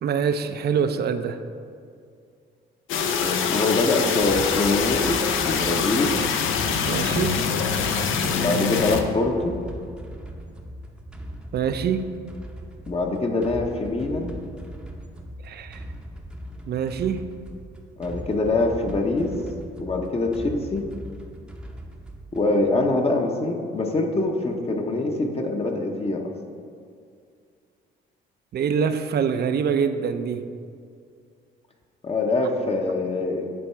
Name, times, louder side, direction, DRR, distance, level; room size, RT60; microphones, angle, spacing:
voice 1, 0.0-1.4 6.9-7.3 11.5-12.1 15.4-15.8 16.7-17.3 28.5-30.4, right 7 dB, 55° right, 9 dB, 0.5 m, -25 dB
sound 1, 2.9-9.0, left 6 dB, 85° left, 0.6 m, -24 dB
voice 2, 3.2-6.1 8.3-9.6 12.9-14.4 18.0-19.3 19.8-20.8 22.3-26.3 32.0-33.5, left 2 dB, 30° left, 2 dB, 0.8 m, -24 dB
sound 2, 4.2-22.6, equal, 5° right, 0.7 m, -39 dB
8.7 x 3.5 x 5.6 m, 2.3 s
cardioid pair, 90°, 20 cm